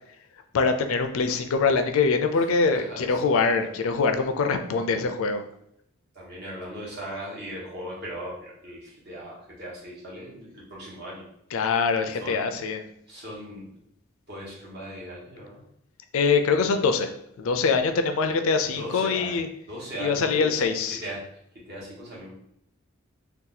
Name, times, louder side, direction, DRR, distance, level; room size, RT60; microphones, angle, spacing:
voice 1, 0.5-5.4 11.5-12.8 16.1-17.1 17.4-19.5 20.0-21.0, left 4 dB, 70° left, 7 dB, 0.3 m, -23 dB
voice 2, 2.7-3.3 6.1-11.2 12.2-12.5 13.1-13.8 14.3-15.6 18.7-21.2 21.5-22.3, right 1 dB, 45° right, -5 dB, 1.2 m, -39 dB
2.7 x 2.3 x 3.9 m, 0.75 s
head